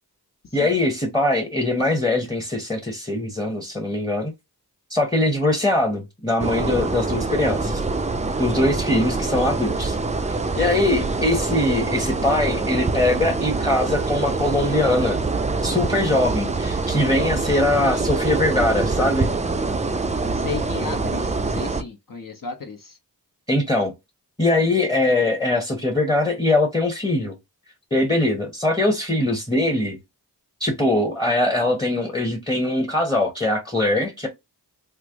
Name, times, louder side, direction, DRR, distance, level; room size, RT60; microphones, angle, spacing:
voice 1, 0.5-4.3 4.9-7.8 8.4-10.0 10.6-15.2 15.6-19.3 23.5-23.9 24.4-27.3 27.9-30.0 30.6-34.3, left 2 dB, 15° left, 0.9 m, -22 dB
sound 1, 6.4-21.8, right 3 dB, 20° right, 0.4 m, -25 dB
voice 2, 20.3-23.0, left 5 dB, 55° left, 0.9 m, -34 dB
3.3 x 2.0 x 3.5 m
wide cardioid pair, 55°, 38 cm